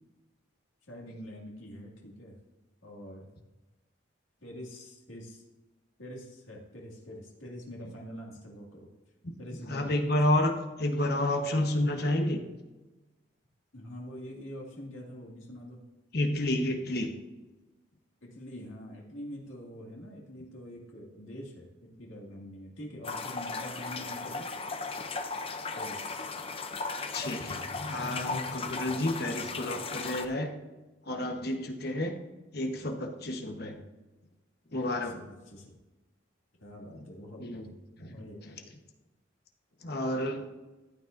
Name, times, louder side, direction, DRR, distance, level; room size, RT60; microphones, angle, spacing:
voice 1, 0.9-2.4 2.8-3.3 4.4-5.4 6.0-8.9 9.4-9.9 13.7-15.8 18.2-24.5 25.7-26.4 34.7-35.1 35.5-35.7 36.6-37.6 38.1-38.4, equal, 90° left, -3 dB, 2.2 m, -45 dB
voice 2, 9.7-12.4 16.1-17.1 27.1-30.5 31.0-32.1 32.5-33.8 34.7-35.2 36.9-37.0 37.4-37.7 38.0-38.6 39.8-40.5, left 1 dB, 55° left, 4 dB, 1.1 m, -30 dB
sound 1, 23.0-30.3, left 4 dB, 30° left, 0.5 m, -36 dB
14.5 x 9.3 x 2.6 m, 1.1 s
head